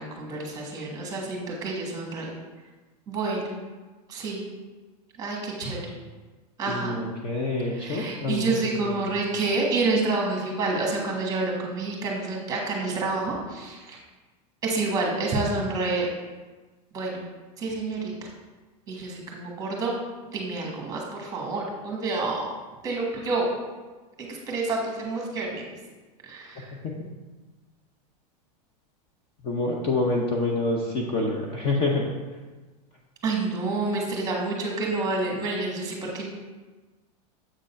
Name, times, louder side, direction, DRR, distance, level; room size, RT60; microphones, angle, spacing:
voice 1, 0.0-2.3 3.1-3.6 4.1-4.4 5.2-5.8 6.6-6.9 7.8-14.0 14.6-16.1 16.9-17.2 17.6-18.3 18.9-20.0 20.3-22.5 22.8-23.5 24.2-25.7 26.3-26.7 33.2-36.3, right 3 dB, 15° right, -1 dB, 1.4 m, -28 dB
voice 2, 6.7-9.0 26.8-27.1 29.4-32.1, left 2 dB, 25° left, -1 dB, 0.8 m, -27 dB
7.6 x 3.7 x 5.6 m, 1.3 s
supercardioid pair, 160°, 21 cm